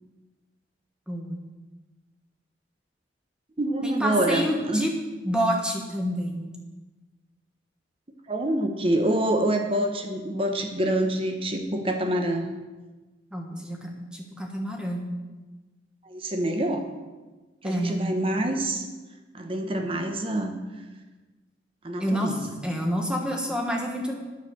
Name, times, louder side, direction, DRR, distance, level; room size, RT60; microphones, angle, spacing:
voice 1, 1.1-1.4 3.8-4.9 5.2-6.5 13.3-15.1 17.6-18.0 22.0-22.4 22.6-24.1, equal, 5° right, 0 dB, 1.2 m, -28 dB
voice 2, 3.6-4.8 8.3-12.4 16.0-16.8 17.6-18.8 19.3-20.6 21.8-22.6, right 1 dB, 30° right, 5 dB, 1.0 m, -26 dB
9.4 x 6.6 x 6.5 m, 1.2 s
head